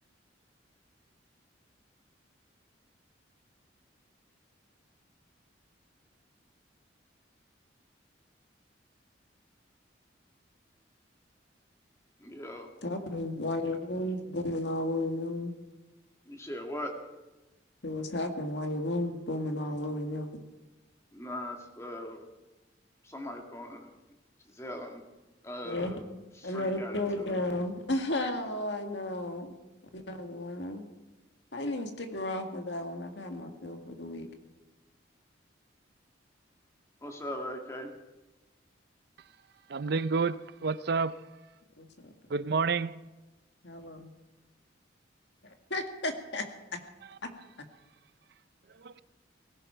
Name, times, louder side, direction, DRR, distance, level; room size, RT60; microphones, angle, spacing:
voice 1, 12.2-12.7 16.3-16.9 21.1-22.2 23.0-23.9 24.6-25.0 25.4-26.0 26.5-27.3 37.0-37.9, left 1 dB, 15° left, 2.1 m, -39 dB
voice 2, 12.8-15.5 17.8-20.3 25.6-25.9 26.4-29.5 29.9-30.8 31.5-34.3 41.8-42.1 43.6-44.1 45.4-46.4 47.2-47.3, left 1 dB, 65° left, 2.0 m, -33 dB
voice 3, 39.7-40.4 40.6-41.1 42.3-42.9 48.8-49.0, right 4 dB, 60° right, 0.5 m, -28 dB
18.5 x 16.5 x 4.6 m
head